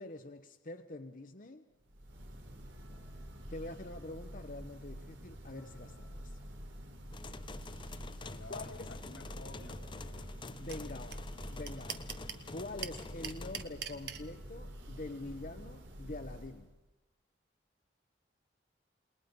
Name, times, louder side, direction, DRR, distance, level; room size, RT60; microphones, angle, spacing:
voice 1, 0.0-1.7 3.5-6.4 8.5-8.9 10.6-11.2 11.5-12.1 12.5-16.7, left 2 dB, 45° left, 6 dB, 1.0 m, -45 dB
Church bell, 1.8-16.8, equal, 85° right, 4.7 m, -47 dB
sound 1, 7.1-13.6, left 3 dB, 25° left, 0.7 m, -48 dB
voice 2, 8.2-10.4, left 2 dB, 90° left, 3 dB, 4.2 m, -51 dB
sound 2, 10.7-10.8 11.1-11.2 11.4-12.4 12.8-14.2, right 9 dB, 60° right, 1.6 m, -40 dB
29.0 x 21.0 x 5.4 m, 1.1 s
head